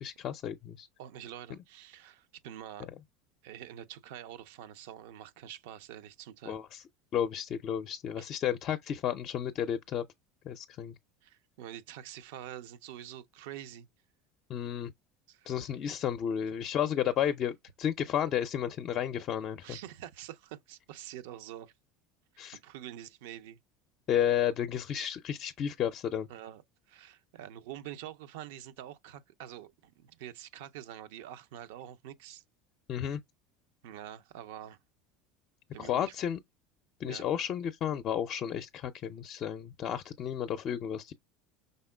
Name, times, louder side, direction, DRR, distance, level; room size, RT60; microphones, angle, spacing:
voice 1, 0.0-0.9 6.5-6.8 7.1-10.1 10.5-10.9 14.5-14.9 15.5-19.8 22.4-22.6 24.1-26.3 32.9-33.2 35.8-36.4 37.0-41.1, left 9 dB, 50° left, 0.5 m, -32 dB
voice 2, 1.0-2.9 3.4-6.6 8.2-8.3 11.2-13.9 15.3-15.6 19.6-21.7 22.6-23.6 26.3-26.6 26.9-32.4 33.8-34.8 35.7-36.2 37.0-37.2, right 11 dB, 75° right, 0.5 m, -46 dB
5.4 x 3.5 x 2.2 m
hypercardioid pair, 85°, 0 cm